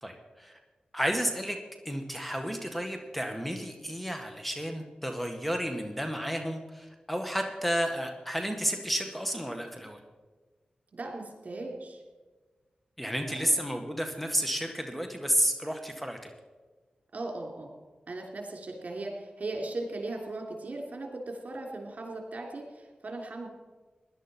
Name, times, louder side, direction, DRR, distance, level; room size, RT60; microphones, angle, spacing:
voice 1, 0.0-0.6 0.9-1.6 1.9-10.0 13.0-16.3, equal, 5° left, 5 dB, 1.7 m, -31 dB
voice 2, 10.9-12.0 13.2-13.5 17.1-17.7 18.1-23.5, right 2 dB, 60° right, 2 dB, 3.3 m, -38 dB
17.0 x 11.5 x 4.5 m, 1.3 s
cardioid pair, 45°, 3 cm